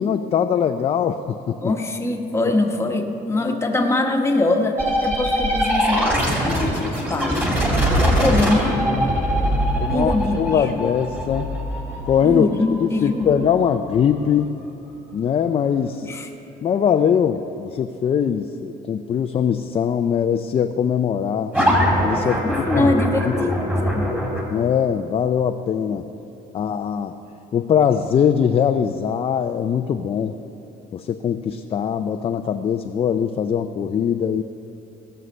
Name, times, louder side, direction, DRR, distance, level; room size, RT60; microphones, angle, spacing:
voice 1, 0.0-1.7 9.8-11.5 12.0-12.5 12.8-14.6 15.1-16.1 16.6-21.5 22.0-22.4 22.7-22.9 23.2-23.3 24.5-26.1 26.5-27.2 27.5-30.4 30.9-34.4, left 8 dB, 35° left, 7 dB, 0.4 m, -21 dB
voice 2, 1.6-6.1 6.5-7.5 8.0-9.2 9.9-10.4 12.2-13.5 16.0-16.3 22.2-23.5 23.8-24.1, left 2 dB, 15° left, 3 dB, 1.1 m, -23 dB
sound 1, 4.8-14.2 21.5-24.4, equal, 10° right, 2.8 m, -22 dB
17.5 x 6.5 x 5.4 m, 2.7 s
cardioid pair, 110°, 17 cm